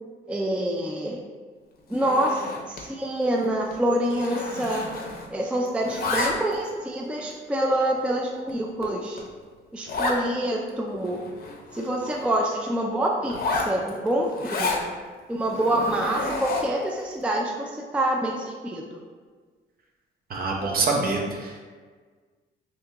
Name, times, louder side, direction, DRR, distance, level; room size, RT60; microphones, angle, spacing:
voice 1, 0.3-1.2 1.9-4.9 5.3-9.2 9.7-11.2 11.7-14.9 15.3-19.0, right 1 dB, 5° right, 0 dB, 0.3 m, -26 dB
Zipper (clothing), 1.9-2.9 3.2-3.4 3.7-5.4 5.7-6.7 7.3-7.4 8.0-8.1 8.5-8.6 8.8-8.9 9.2-9.3 9.9-10.2 10.7-10.8 11.0-12.3 13.2-14.8 15.4-16.8, left 3 dB, 50° left, 0.6 m, -31 dB
voice 2, 20.3-21.7, right 3 dB, 50° right, 0 dB, 0.7 m, -26 dB
2.9 x 2.7 x 3.5 m, 1.5 s
cardioid pair, 90°, 20 cm